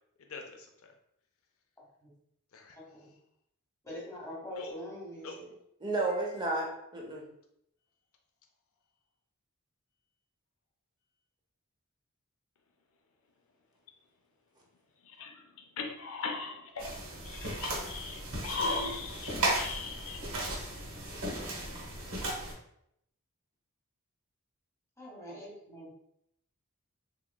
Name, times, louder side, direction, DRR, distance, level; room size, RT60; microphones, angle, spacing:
voice 1, 0.3-0.7 2.5-2.8 4.6-4.7 5.2-5.4 15.0-17.0 17.2-20.4, left 3 dB, 65° left, 4 dB, 0.5 m, -39 dB
voice 2, 2.8-3.1 3.8-5.5 25.0-25.9, left 1 dB, 15° left, -4 dB, 1.0 m, -44 dB
voice 3, 5.8-7.2, right 2 dB, 20° right, -2 dB, 0.7 m, -32 dB
sound 1, 16.8-22.5, right 1 dB, 75° right, 1.1 m, -36 dB
3.6 x 2.9 x 2.2 m, 0.76 s
head